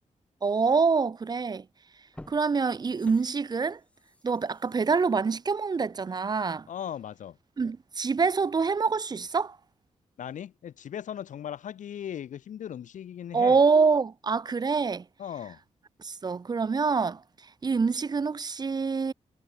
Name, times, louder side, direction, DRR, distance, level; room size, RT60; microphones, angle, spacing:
voice 1, 0.4-1.7 2.3-3.8 4.2-6.7 7.6-9.6 13.3-15.0 16.0-17.2 17.6-19.1, right 5 dB, 30° right, 0.6 m, -25 dB
sound 1, 1.4-1.5 2.0-6.7 7.1-7.2, left 1 dB, 10° left, 7.8 m, -53 dB
voice 2, 6.7-7.4 10.2-13.6 15.2-15.6, left 9 dB, 80° left, 0.8 m, -38 dB
wide cardioid pair, 145°, 13 cm